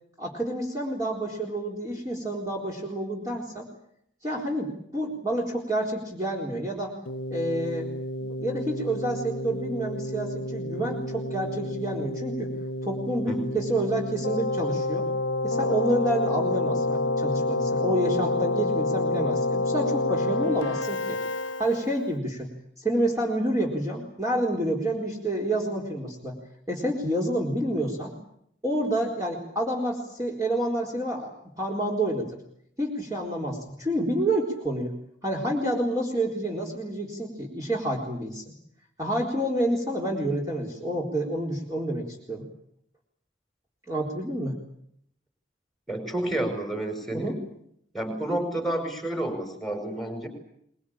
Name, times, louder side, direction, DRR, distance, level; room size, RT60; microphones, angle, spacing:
voice 1, 0.2-3.7 4.2-6.9 7.3-7.9 8.2-12.5 12.8-15.1 15.4-22.5 22.8-26.4 26.7-28.1 28.6-31.3 31.6-32.4 32.8-34.9 35.2-38.5 39.0-42.4 43.9-44.5 47.1-47.4, right 1 dB, 15° right, -1 dB, 4.1 m, -28 dB
Keyboard (musical), 7.1-22.1, left 2 dB, 85° left, 1.1 m, -29 dB
voice 2, 45.9-47.4 47.9-50.3, right 1 dB, ahead, 5 dB, 5.4 m, -30 dB
24.0 x 22.0 x 8.8 m, 0.70 s
head